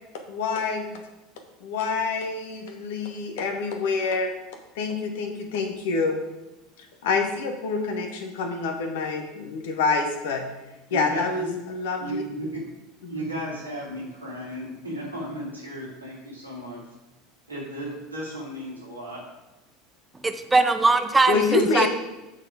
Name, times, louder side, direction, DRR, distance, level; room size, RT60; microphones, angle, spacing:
voice 1, 0.3-0.9 1.6-4.3 4.7-6.2 7.0-10.4 10.9-12.2 13.0-13.2 21.3-21.9, left 4 dB, 60° left, 5 dB, 1.1 m, -26 dB
voice 2, 10.9-11.5 12.0-12.6 13.1-16.8 17.5-19.2, right 1 dB, 90° right, -5 dB, 2.3 m, -34 dB
voice 3, 20.2-21.9, right 3 dB, 15° right, 8 dB, 0.5 m, -21 dB
8.9 x 4.2 x 4.9 m, 1.0 s
figure-of-eight pair, 75°, 0 cm